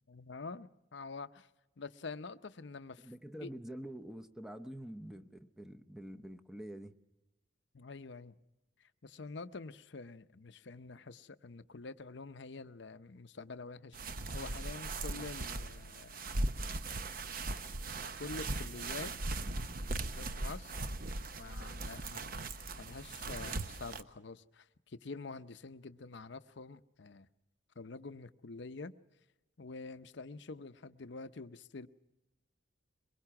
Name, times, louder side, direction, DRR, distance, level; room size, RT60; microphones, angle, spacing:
voice 1, 0.1-1.5 1.8-3.1 3.4-3.5 7.7-8.3 8.8-16.2 18.2-19.1 19.9-20.8 21.4-27.3 27.8-28.9 29.6-31.9, left 3 dB, 60° left, 0.7 m, -47 dB
voice 2, 3.0-6.9, right 1 dB, ahead, 0.7 m, -46 dB
sound 1, 13.9-24.0, right 2 dB, 45° right, 0.8 m, -39 dB
23.0 x 21.5 x 5.9 m
head